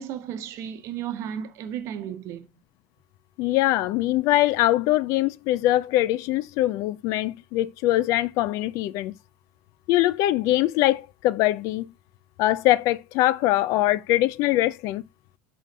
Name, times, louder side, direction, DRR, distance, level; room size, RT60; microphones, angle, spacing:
voice 1, 0.0-2.5, right 9 dB, 55° right, 0.9 m, -34 dB
voice 2, 3.4-9.1 9.9-11.9 12.4-15.0, left 15 dB, 60° left, 0.4 m, -22 dB
7.3 x 3.8 x 4.0 m
supercardioid pair, 120°, 6 cm